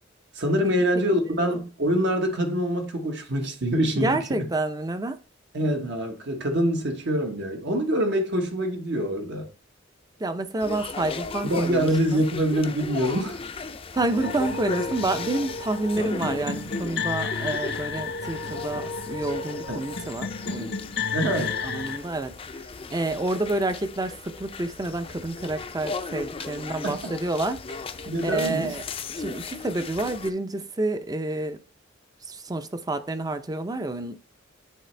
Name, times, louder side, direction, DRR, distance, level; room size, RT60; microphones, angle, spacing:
voice 1, 0.3-4.5 5.5-9.5 11.4-13.4 19.7-19.8 21.1-21.6 26.8-27.0 28.1-28.7, equal, 65° right, 1.2 m, -25 dB
voice 2, 0.9-1.4 4.0-5.2 10.2-12.2 13.9-20.8 21.6-27.6 27.9-28.8 29.2-31.6 32.2-34.2, right 2 dB, 20° right, 0.5 m, -29 dB
sound 1, 10.6-30.3, left 4 dB, 30° left, 0.5 m, -37 dB
sound 2, 14.0-22.0, left 5 dB, 65° left, 0.8 m, -32 dB
9.3 x 4.1 x 3.3 m
head